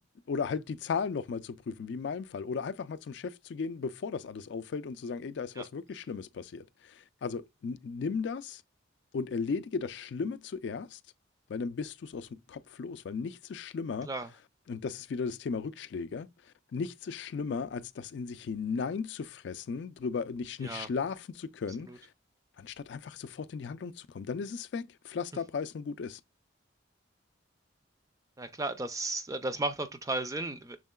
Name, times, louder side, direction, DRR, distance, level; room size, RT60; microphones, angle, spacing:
voice 1, 0.3-8.6 9.1-11.0 11.5-14.1 14.7-16.3 16.7-22.1 22.6-26.2, left 5 dB, 65° left, 0.4 m, -36 dB
voice 2, 28.4-30.8, right 2 dB, 15° right, 0.4 m, -34 dB
6.3 x 3.6 x 2.2 m
head